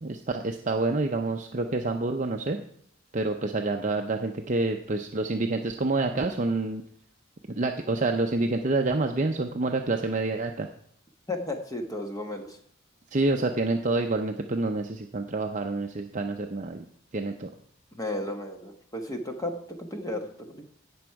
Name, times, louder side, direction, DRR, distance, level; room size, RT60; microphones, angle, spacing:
voice 1, 0.0-2.6 3.1-6.8 7.5-10.7 13.1-16.8 17.1-17.5, right 2 dB, 35° right, 4 dB, 0.6 m, -27 dB
voice 2, 11.3-12.6 18.0-20.6, left 1 dB, 15° left, 4 dB, 1.2 m, -34 dB
16.5 x 6.2 x 4.7 m, 0.64 s
head